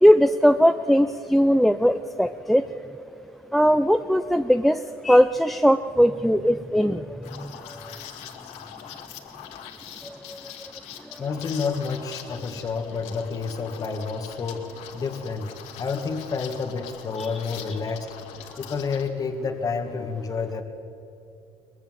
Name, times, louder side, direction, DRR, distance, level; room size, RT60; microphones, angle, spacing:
voice 1, 0.0-2.6 3.5-7.5 10.0-10.4, equal, ahead, 10 dB, 0.5 m, -19 dB
Liquid, 7.2-19.1, left 9 dB, 80° left, 2.1 m, -42 dB
voice 2, 11.2-14.7 14.9-15.5 15.8-18.1 18.6-20.6, left 5 dB, 30° left, 4 dB, 1.7 m, -29 dB
23.0 x 20.0 x 7.8 m, 2.7 s
cardioid pair, 120°, 11 cm